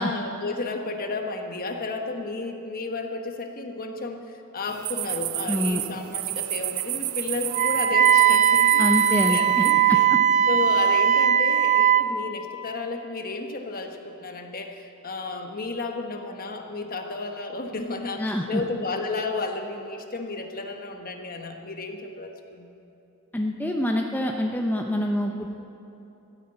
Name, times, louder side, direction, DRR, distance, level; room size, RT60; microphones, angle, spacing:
voice 1, 0.0-8.9 9.3-22.7, left 3 dB, 45° left, 4 dB, 1.2 m, -33 dB
sound 1, 4.7-9.7, right 15 dB, 80° right, 0.5 m, -31 dB
voice 2, 5.5-5.8 8.8-9.6 18.2-18.6 23.3-25.5, equal, 10° left, 1 dB, 0.7 m, -26 dB
Wind instrument woodwind instrument, 7.5-12.1, right 9 dB, 35° right, 0.6 m, -19 dB
14.0 x 9.5 x 8.9 m, 2.9 s
head